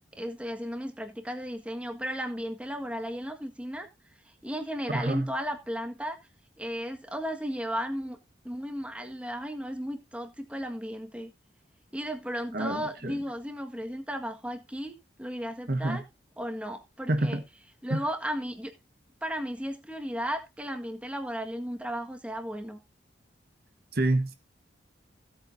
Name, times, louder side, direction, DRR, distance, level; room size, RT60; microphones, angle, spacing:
voice 1, 0.2-3.9 4.4-6.2 6.6-8.2 8.4-11.3 11.9-16.0 16.4-17.4 17.8-18.7 19.2-22.8, equal, 5° right, 1.7 m, -35 dB
voice 2, 4.9-5.3 12.5-13.2 15.7-16.0 17.1-17.4 17.9-18.0 23.9-24.3, right 1 dB, 50° right, 1.3 m, -28 dB
16.5 x 8.7 x 2.7 m
head